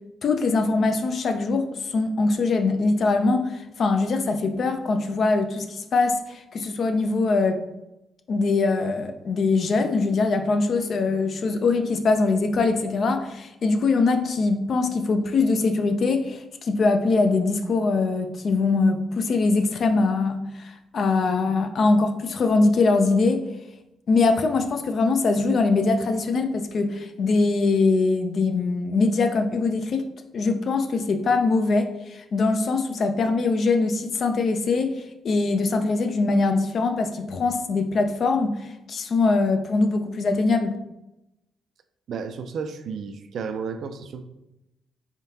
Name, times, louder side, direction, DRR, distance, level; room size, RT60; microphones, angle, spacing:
voice 1, 0.2-7.6 8.3-23.5 24.1-30.1 30.3-40.8, left 3 dB, 55° left, 7 dB, 0.4 m, -22 dB
voice 2, 42.1-44.2, right 5 dB, 65° right, 9 dB, 0.4 m, -32 dB
3.6 x 3.6 x 2.8 m, 0.92 s
cardioid pair, 90°, 0 cm